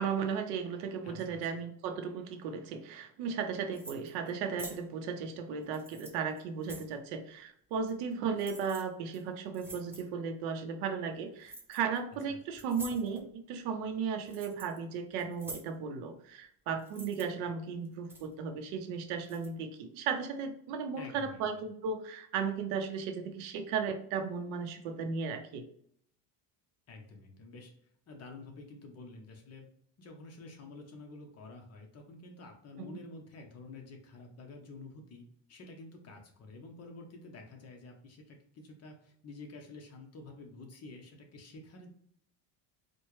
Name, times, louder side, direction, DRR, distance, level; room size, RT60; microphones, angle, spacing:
voice 1, 0.0-25.6 32.8-33.0, right 6 dB, 90° right, 6 dB, 0.8 m, -35 dB
voice 2, 1.0-1.4 12.3-12.4 21.0-21.4 26.9-27.8 28.1-29.7 30.0-35.2 35.5-41.9, left 3 dB, 35° left, 2 dB, 0.9 m, -49 dB
sound 1, 3.7-4.3 4.6-4.8 5.6-6.9 7.9-8.1 8.4-8.8 9.1-9.2 9.5-10.1 11.4-12.0 12.5-13.3 13.9-14.8 15.1-15.7 16.8-17.2 17.9-18.3 19.2-19.5, right 2 dB, 5° right, 0.4 m, -47 dB
4.2 x 2.2 x 3.1 m, 0.66 s
cardioid pair, 140°, 44 cm